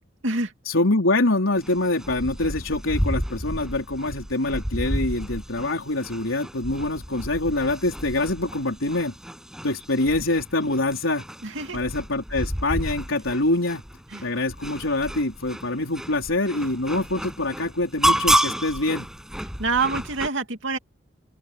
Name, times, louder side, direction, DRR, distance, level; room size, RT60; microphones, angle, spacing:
voice 1, 0.6-9.2 9.6-11.2 11.7-13.8 14.2-19.1, left 2 dB, 85° left, 4.3 m, -25 dB
sound 1, 1.6-20.3, equal, 5° right, 6.3 m, -30 dB
voice 2, 11.4-11.8 14.1-14.2 19.6-20.8, right 3 dB, 70° right, 2.6 m, -26 dB
open air
head